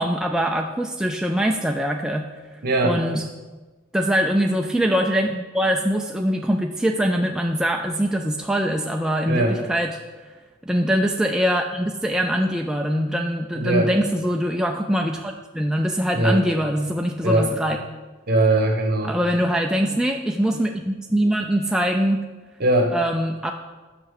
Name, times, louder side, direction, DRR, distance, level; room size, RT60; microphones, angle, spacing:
voice 1, 0.0-2.3 2.8-3.2 3.9-10.0 10.6-17.8 19.0-22.2 22.9-23.5, equal, 5° right, 2 dB, 0.3 m, -23 dB
voice 2, 2.6-3.0 9.3-9.6 13.5-13.9 16.1-16.4 17.2-17.5 18.3-19.2 22.6-23.0, right 2 dB, 50° right, 3 dB, 1.2 m, -20 dB
5.8 x 5.8 x 6.5 m, 1.3 s
head